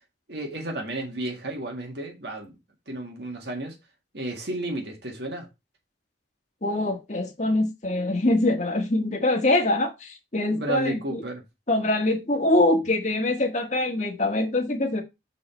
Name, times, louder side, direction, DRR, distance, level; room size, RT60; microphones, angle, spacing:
voice 1, 0.3-2.5 2.9-3.8 4.1-5.5 10.5-11.4, right 2 dB, 60° right, 1.9 m, -32 dB
voice 2, 6.6-11.2 11.7-15.0, left 2 dB, 40° left, 1.6 m, -24 dB
7.0 x 5.1 x 4.4 m
head